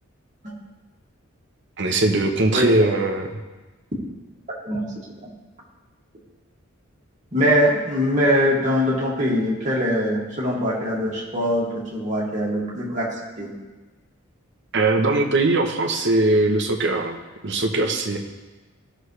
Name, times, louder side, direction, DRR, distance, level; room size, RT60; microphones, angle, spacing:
voice 1, 1.8-3.3 14.7-17.2 17.4-18.2, right 2 dB, 55° right, 4 dB, 1.0 m, -20 dB
voice 2, 7.3-13.1 13.4-13.5, equal, 35° right, -5 dB, 2.2 m, -22 dB
15.0 x 6.3 x 3.3 m, 1.2 s
head